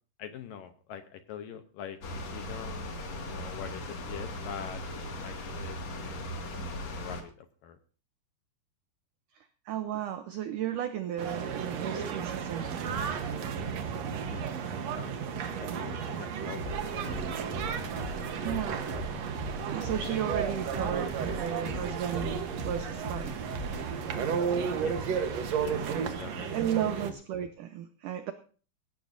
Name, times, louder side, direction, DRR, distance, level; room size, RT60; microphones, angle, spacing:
voice 1, 0.2-3.0 3.3-4.8 5.2-7.8 14.3-14.5 14.9-15.3 15.6-17.6 24.8-25.1 25.6-25.8 26.2-26.6 27.0-27.1, left 9 dB, 75° left, 8 dB, 2.2 m, -45 dB
sound 1, 2.0-7.2, left 1 dB, 45° left, 2.8 m, -38 dB
voice 2, 9.4-13.0 18.4-18.8 19.7-23.4 25.9-26.1 26.5-28.3, right 10 dB, 85° right, 9 dB, 1.8 m, -34 dB
sound 2, 11.2-27.1, right 6 dB, 65° right, 1.7 m, -33 dB
sound 3, 16.6-26.2, equal, 30° right, 1.4 m, -41 dB
17.5 x 15.0 x 2.7 m, 0.40 s
omnidirectional pair, 4.8 m